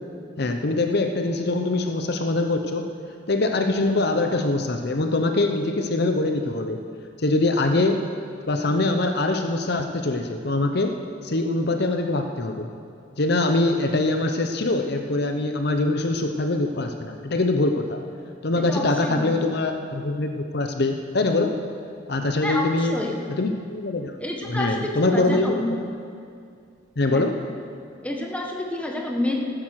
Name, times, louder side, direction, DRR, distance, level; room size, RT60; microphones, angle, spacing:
voice 1, 0.4-2.8 3.3-6.8 7.2-8.0 8.5-10.9 11.2-12.7 13.2-18.0 18.4-21.6 22.1-23.0 23.4-24.2 24.4-25.6 27.0-27.4, left 2 dB, 55° left, 5 dB, 0.8 m, -23 dB
voice 2, 18.7-19.4 22.4-23.2 24.2-25.6 27.1-27.2 28.0-29.5, left 1 dB, 5° left, 0 dB, 1.3 m, -28 dB
15.0 x 9.9 x 6.4 m, 2.3 s
head